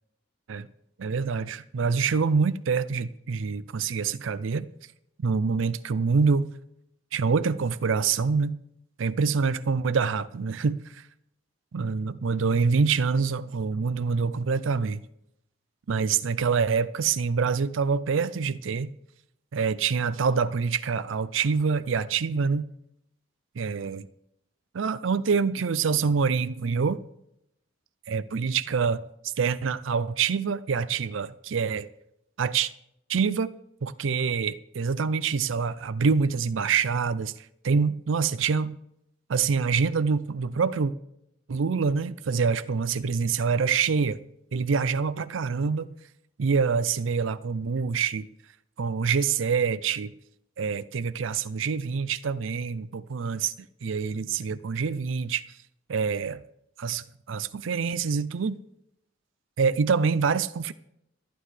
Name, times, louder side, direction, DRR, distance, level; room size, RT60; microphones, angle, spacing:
voice 1, 1.0-4.7 5.2-6.5 7.1-8.6 9.0-11.0 11.7-15.0 15.9-18.9 19.5-22.7 23.6-24.1 24.7-27.0 28.1-29.0 29.4-31.9 32.4-32.7 33.1-33.5 33.8-37.3 37.6-38.8 39.3-40.9 41.5-44.2 44.5-45.9 46.4-48.3 48.8-50.1 50.6-53.5 53.8-55.4 55.9-56.4 56.8-58.6 59.6-60.7, right 5 dB, 80° right, 0.5 m, -26 dB
26.0 x 9.4 x 3.3 m
head